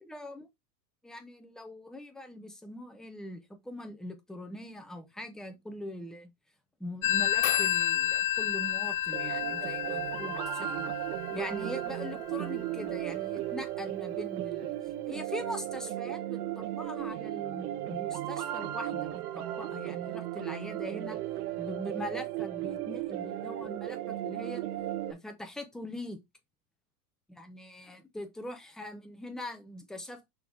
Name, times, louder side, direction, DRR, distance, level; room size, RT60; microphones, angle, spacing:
voice 1, 0.0-0.5 1.0-6.3 6.8-10.8 11.3-14.8 15.1-21.2 21.6-24.6 25.1-26.2 27.3-30.3, left 1 dB, ahead, 0.4 m, -42 dB
Telephone, 7.0-12.4, left 12 dB, 70° left, 0.9 m, -30 dB
sound 1, 9.1-25.1, right 13 dB, 75° right, 1.4 m, -35 dB
6.3 x 3.5 x 4.5 m
supercardioid pair, 150°, 46 cm